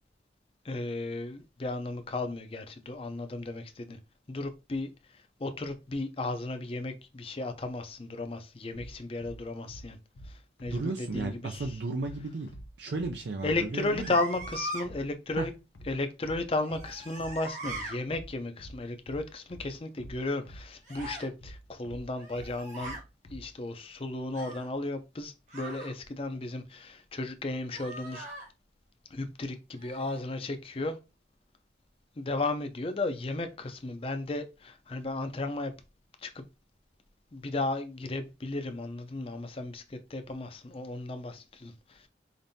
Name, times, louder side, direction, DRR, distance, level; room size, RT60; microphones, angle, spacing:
voice 1, 0.6-4.0 4.3-10.0 10.2-11.7 13.4-15.5 15.9-23.0 23.3-28.3 29.1-31.0 32.2-35.7 36.2-36.4 37.3-42.1, left 2 dB, 30° left, 0.5 m, -34 dB
sound 1, 8.7-23.5, equal, 90° left, 0.7 m, -47 dB
voice 2, 10.7-14.1 15.4-15.5, right 3 dB, 80° right, 0.5 m, -34 dB
sound 2, 13.8-14.9 16.6-18.0 20.8-21.3 22.1-23.0 24.3-24.7 25.5-25.9 27.7-28.5 29.8-30.2, right 1 dB, 45° right, 1.1 m, -41 dB
5.1 x 2.6 x 2.7 m
head